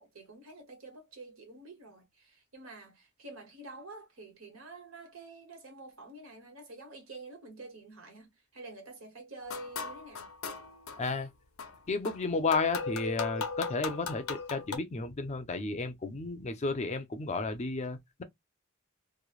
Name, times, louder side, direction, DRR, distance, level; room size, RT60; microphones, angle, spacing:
voice 1, 0.0-10.3, right 3 dB, 85° right, 1.1 m, -48 dB
sound 1, 9.4-11.1 11.6-14.8, left 5 dB, 80° left, 0.6 m, -38 dB
voice 2, 11.0-11.3 11.9-18.2, left 3 dB, 35° left, 0.5 m, -32 dB
3.1 x 2.1 x 2.3 m
head